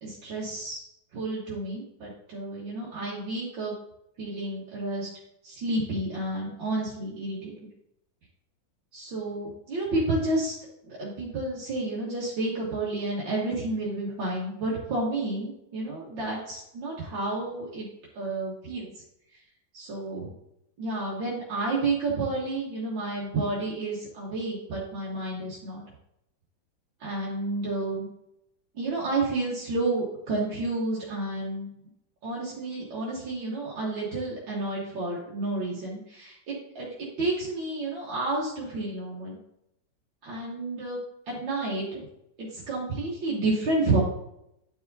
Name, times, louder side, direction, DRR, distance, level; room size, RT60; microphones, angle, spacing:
voice 1, 0.0-0.8 1.1-3.7 4.2-5.1 5.4-7.5 8.9-10.6 10.8-17.9 18.2-18.9 19.7-20.3 20.8-25.8 27.0-28.1 28.8-31.8 32.2-36.9 37.2-39.4 40.2-41.0 41.3-42.0 42.4-44.0, right 2 dB, 90° right, -6 dB, 2.1 m, -30 dB
11.0 x 4.8 x 2.7 m, 0.81 s
omnidirectional pair, 2.1 m